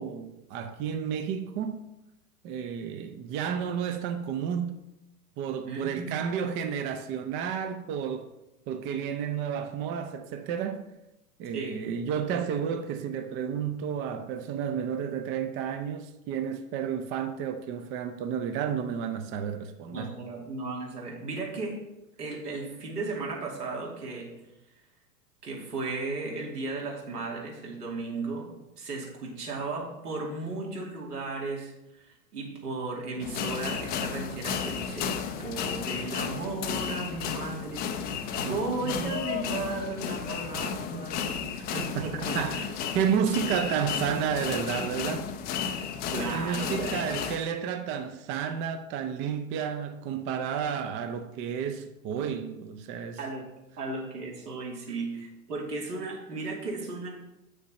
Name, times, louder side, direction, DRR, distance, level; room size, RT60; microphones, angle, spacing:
voice 1, 0.0-1.8 2.4-4.8 5.4-8.3 8.7-10.8 11.4-20.1 38.4-39.2 42.0-42.1 42.3-42.7 42.9-45.3 45.7-45.8 46.2-53.2, right 7 dB, 25° right, 0.5 m, -31 dB
voice 2, 5.6-6.4 11.5-11.8 19.9-21.8 22.2-24.3 25.4-28.5 28.8-35.1 35.4-42.6 46.1-47.1 53.2-53.5 53.8-57.1, right 3 dB, 80° right, 2.5 m, -35 dB
sound 1, 33.2-47.4, left 7 dB, 20° left, 0.5 m, -33 dB
7.5 x 6.6 x 4.1 m
hypercardioid pair, 100°, 46 cm